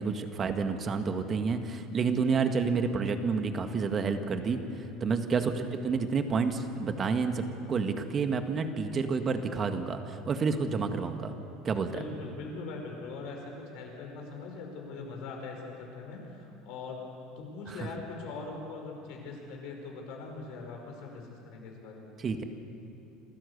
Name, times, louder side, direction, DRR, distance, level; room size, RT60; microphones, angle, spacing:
voice 1, 0.0-4.6 5.0-11.3 11.6-11.9 22.2-22.4, right 5 dB, 35° right, 7 dB, 1.9 m, -29 dB
voice 2, 4.4-5.1 11.8-17.0 17.4-22.1, left 3 dB, 65° left, 1 dB, 5.2 m, -42 dB
28.0 x 13.5 x 8.3 m, 2.9 s
hypercardioid pair, 80°, 0 cm